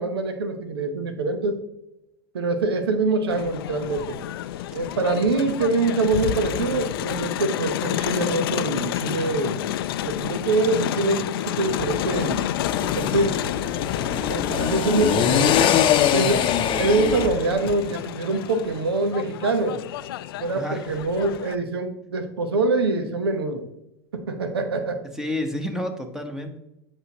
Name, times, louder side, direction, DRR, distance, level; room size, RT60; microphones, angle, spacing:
voice 1, 0.0-1.6 2.3-4.2 4.7-9.6 10.0-12.5 12.8-13.4 14.3-15.6 16.1-16.5 16.7-19.8 20.4-23.7 24.1-25.0, right 3 dB, 80° right, 8 dB, 1.0 m, -24 dB
Crowd, 3.3-21.5, left 12 dB, 70° left, 0.4 m, -30 dB
sound 1, 11.7-17.3, left 9 dB, 40° left, 0.7 m, -23 dB
voice 2, 20.5-21.0 25.1-26.6, left 1 dB, 5° right, 4 dB, 1.2 m, -30 dB
8.1 x 5.9 x 3.0 m, 0.87 s
hypercardioid pair, 90°, 13 cm